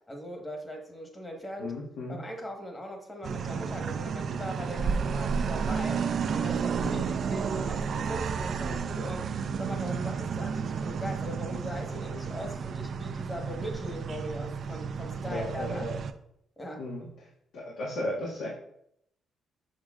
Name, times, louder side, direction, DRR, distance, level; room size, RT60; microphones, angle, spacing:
voice 1, 0.0-1.8 2.1-6.0 6.3-9.3 9.6-15.9 16.6-16.8, equal, 20° left, 3 dB, 1.3 m, -40 dB
voice 2, 1.6-2.2 6.8-7.1 15.2-16.0 16.8-17.1 17.5-18.5, left 1 dB, 80° left, -4 dB, 1.3 m, -35 dB
sound 1, 3.2-16.1, right 6 dB, 55° right, 0.4 m, -32 dB
6.4 x 6.3 x 2.4 m, 0.75 s
cardioid pair, 90°, 0 cm